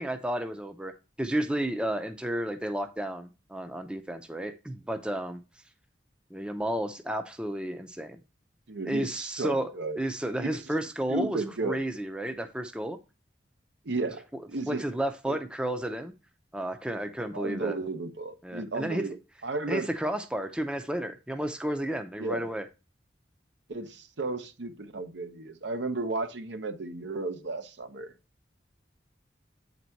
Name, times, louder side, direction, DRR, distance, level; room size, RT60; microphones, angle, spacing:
voice 1, 0.0-5.4 6.3-8.2 8.8-9.7 10.0-13.0 14.3-16.1 16.5-17.8 18.4-19.1 19.7-22.7, right 1 dB, 5° right, 0.5 m, -32 dB
voice 2, 8.7-10.0 10.4-10.5 11.1-11.8 13.8-14.8 15.3-15.4 17.3-19.2 19.4-19.9 22.2-22.5 23.7-28.1, right 3 dB, 80° right, 0.8 m, -33 dB
8.3 x 4.1 x 4.5 m
head